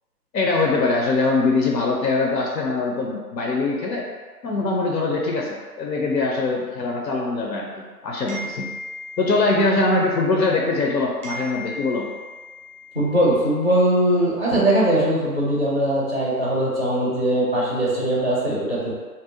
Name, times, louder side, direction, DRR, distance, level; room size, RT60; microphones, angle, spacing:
voice 1, 0.3-4.0 4.4-7.7 8.0-8.7 9.2-12.1, left 3 dB, 90° left, -1 dB, 0.6 m, -22 dB
sound 1, 8.3-10.9 11.2-13.8, left 1 dB, 30° right, 0.5 m, -38 dB
voice 2, 12.9-18.9, right 1 dB, 40° left, -7 dB, 0.4 m, -20 dB
2.6 x 2.0 x 2.6 m, 1.4 s
figure-of-eight pair, 160°, 49 cm